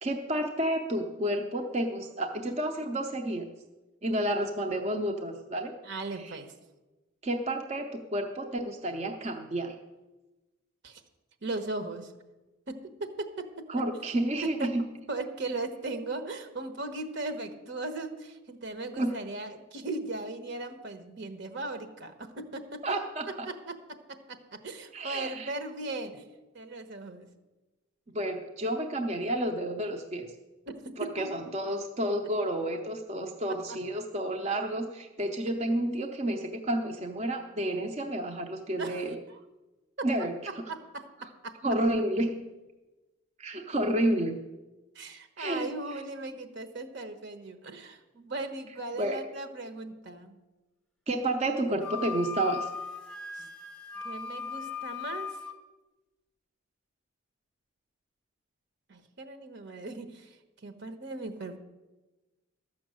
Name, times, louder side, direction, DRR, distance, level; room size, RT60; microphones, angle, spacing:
voice 1, 0.0-3.5 4.0-5.7 6.1-6.4 7.2-9.7 13.7-14.9 19.0-19.1 22.8-23.5 24.9-25.5 28.1-30.3 31.0-39.2 40.0-40.4 41.6-42.3 43.4-44.4 45.4-46.0 49.0-49.3 51.1-52.7, right 1 dB, 35° right, 3 dB, 0.7 m, -30 dB
voice 2, 5.8-6.5 10.8-11.0 11.4-12.1 12.7-13.6 14.4-14.7 15.1-22.8 23.4-26.2 26.5-27.3 30.7-31.3 33.7-33.8 38.8-39.4 40.0-40.3 40.7-41.0 41.4-41.5 44.9-50.4 53.3-53.5 54.0-55.4 58.9-60.4 60.6-61.6, right 2 dB, 60° right, 7 dB, 1.1 m, -38 dB
Wind instrument woodwind instrument, 51.8-55.6, left 5 dB, 5° left, 0.9 m, -38 dB
12.5 x 6.2 x 7.7 m, 1.1 s
head